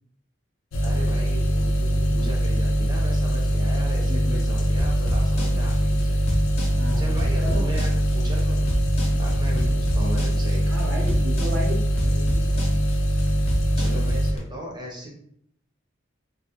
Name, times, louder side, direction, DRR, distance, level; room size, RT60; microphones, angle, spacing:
sound 1, 0.7-14.3, equal, 90° left, 0.4 m, -22 dB
voice 1, 0.8-6.2 7.0-10.8 13.8-15.1, right 1 dB, 20° right, -2 dB, 0.6 m, -37 dB
voice 2, 4.1-4.4 6.7-7.8 10.6-12.6, equal, 75° right, -1 dB, 0.8 m, -34 dB
sound 2, 4.8-14.4, left 1 dB, 30° left, 0.6 m, -31 dB
2.4 x 2.1 x 2.8 m, 0.68 s
head